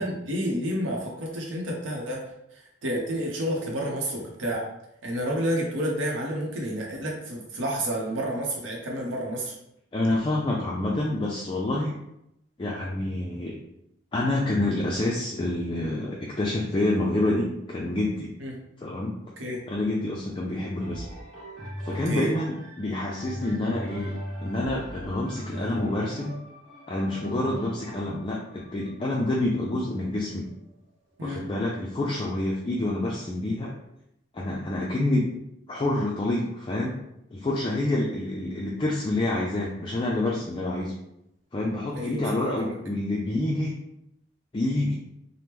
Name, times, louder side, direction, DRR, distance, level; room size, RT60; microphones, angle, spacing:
voice 1, 0.0-2.3 2.5-4.7 5.0-9.5 18.4-18.6 19.4-19.6 22.1-22.3 31.2-31.5 42.0-42.8, equal, 85° right, -2 dB, 0.7 m, -30 dB
voice 2, 9.9-11.9 12.6-13.6 14.1-18.3 18.8-19.1 19.7-21.0 21.8-24.1 24.4-26.3 26.9-30.5 31.2-33.7 34.3-35.3 35.7-37.0 37.3-40.9 41.5-43.8 44.5-44.9, left 1 dB, 25° left, -3 dB, 0.3 m, -27 dB
sound 1, 20.8-30.6 31.2-31.3, equal, 5° left, 1.0 m, -40 dB
2.9 x 2.1 x 3.4 m, 0.81 s
head